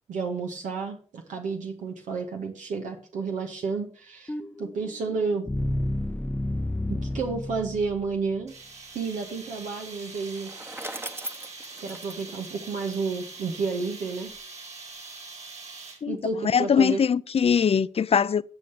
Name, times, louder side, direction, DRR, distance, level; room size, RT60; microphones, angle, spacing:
voice 1, 0.1-4.3 4.6-5.5 6.9-8.6 8.9-10.5 11.8-14.3 16.1-17.0, right 4 dB, 85° right, 1.7 m, -31 dB
sound 1, 4.3-8.4, left 1 dB, 15° left, 0.7 m, -31 dB
sound 2, 8.5-16.2, right 4 dB, 60° right, 6.2 m, -43 dB
Bicycle, 10.2-13.4, right 1 dB, 20° right, 1.2 m, -40 dB
voice 2, 16.4-18.4, left 7 dB, 50° left, 0.6 m, -22 dB
10.5 x 6.4 x 6.7 m
supercardioid pair, 50°, 13 cm